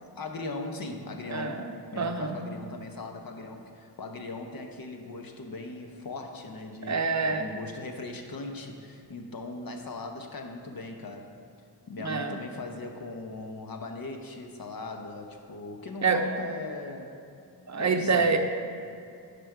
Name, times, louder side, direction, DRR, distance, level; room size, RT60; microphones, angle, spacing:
voice 1, 0.0-1.6 1.9-11.3 11.9-17.2 17.8-18.4, left 3 dB, 55° left, 3 dB, 1.0 m, -39 dB
voice 2, 1.3-2.4 6.8-7.5 12.0-12.4 16.0-16.2 17.7-18.4, right 4 dB, 40° right, 5 dB, 0.6 m, -26 dB
10.0 x 5.2 x 4.6 m, 2.4 s
wide cardioid pair, 85°, 42 cm